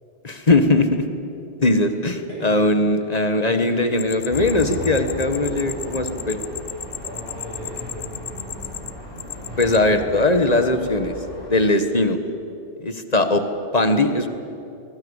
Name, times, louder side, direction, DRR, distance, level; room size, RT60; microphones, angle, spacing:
voice 1, 0.2-1.0 1.6-6.4 9.6-11.1 11.5-12.2 12.8-13.4 13.7-14.3, left 2 dB, 35° left, 8 dB, 1.5 m, -20 dB
voice 2, 2.3-2.6 3.4-3.9 7.0-8.7, left 1 dB, 25° right, -4 dB, 7.4 m, -38 dB
sound 1, 4.0-9.8, left 9 dB, 65° left, 1.0 m, -35 dB
sound 2, 4.3-11.5, equal, 50° right, 7.1 m, -36 dB
24.0 x 20.5 x 8.2 m, 2.7 s
omnidirectional pair, 1.2 m